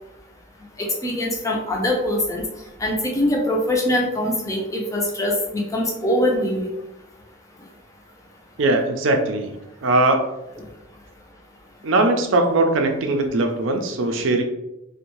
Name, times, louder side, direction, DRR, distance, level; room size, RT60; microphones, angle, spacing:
voice 1, 1.0-2.4 2.8-6.7, left 1 dB, 15° left, 0 dB, 0.4 m, -23 dB
voice 2, 8.6-9.5 9.8-10.2 11.8-14.4, right 2 dB, 70° right, 5 dB, 0.4 m, -20 dB
2.6 x 2.1 x 2.9 m, 0.92 s
head